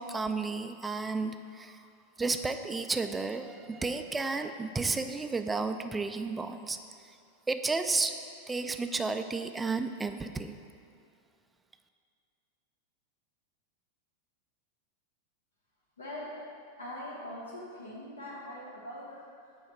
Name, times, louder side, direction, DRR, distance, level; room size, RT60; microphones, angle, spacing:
voice 1, 0.0-1.8 2.2-6.8 7.5-8.1 8.5-10.6, right 3 dB, 10° right, 8 dB, 0.3 m, -32 dB
voice 2, 16.0-16.5 16.8-19.6, left 1 dB, 70° left, -4 dB, 0.9 m, -42 dB
8.2 x 3.1 x 5.6 m, 2.4 s
figure-of-eight pair, 90°, 0 cm